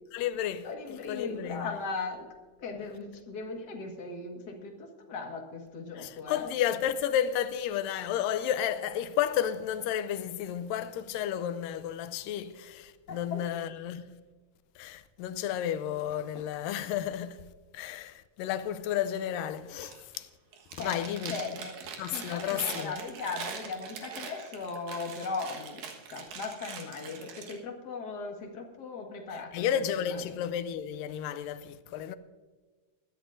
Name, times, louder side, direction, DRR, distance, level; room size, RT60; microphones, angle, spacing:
voice 1, 0.1-1.8 5.9-14.2 14.8-17.5 17.7-20.3 20.7-21.4 22.0-23.0 29.5-32.2, left 10 dB, 90° left, 2.3 m, -32 dB
voice 2, 0.6-2.3 2.6-6.5 13.1-13.4 20.8-21.8 22.1-25.8 26.1-29.6 30.1-30.4, left 4 dB, 40° left, 1.7 m, -38 dB
Chewing mastication, 19.7-20.2 20.5-27.5, right 6 dB, 85° right, 3.2 m, -42 dB
21.0 x 13.0 x 2.6 m
omnidirectional pair, 3.9 m